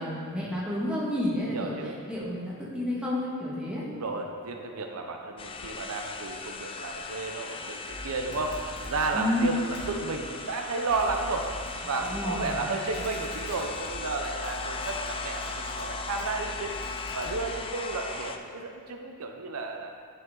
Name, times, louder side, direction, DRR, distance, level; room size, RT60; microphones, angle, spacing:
voice 1, 0.0-3.8 9.1-9.5 12.0-12.6, left 1 dB, 5° right, -6 dB, 1.6 m, -30 dB
voice 2, 1.4-2.0 3.9-11.5 11.9-16.8 17.1-19.9, right 3 dB, 70° right, 3 dB, 0.7 m, -33 dB
sound 1, 5.4-18.4, left 4 dB, 25° left, 0.4 m, -38 dB
sound 2, 7.9-9.1 9.7-9.9 10.9-11.7 12.0-12.6 12.9-17.6, equal, 75° left, 1.9 m, -42 dB
11.0 x 5.9 x 3.8 m, 2.2 s
head